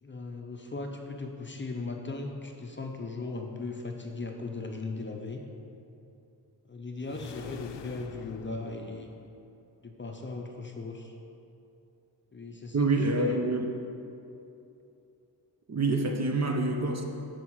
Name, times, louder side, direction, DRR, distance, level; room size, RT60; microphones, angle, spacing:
voice 1, 0.0-5.4 6.7-9.1 9.8-11.1 12.3-13.4, left 3 dB, 30° left, 2 dB, 0.6 m, -38 dB
sound 1, 7.0-9.6, left 6 dB, 85° left, 0.5 m, -45 dB
voice 2, 12.7-13.7 15.7-17.0, right 2 dB, 40° right, 3 dB, 0.7 m, -27 dB
7.3 x 4.7 x 6.2 m, 2.7 s
wide cardioid pair, 120°, 42 cm